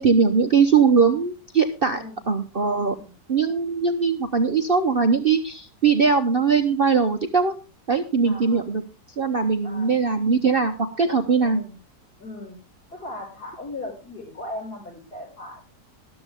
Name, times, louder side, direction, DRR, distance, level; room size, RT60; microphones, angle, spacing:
voice 1, 0.0-2.0 2.3-2.9 3.3-7.6 7.9-8.8 9.2-11.6, right 5 dB, 40° right, 7 dB, 0.9 m, -20 dB
voice 2, 1.9-2.3 2.8-3.1 8.2-8.7 9.6-10.0 11.4-11.7 12.2-12.6 12.9-15.6, left 1 dB, 65° left, -1 dB, 6.7 m, -38 dB
13.0 x 12.5 x 3.6 m, 0.31 s
omnidirectional pair, 1.8 m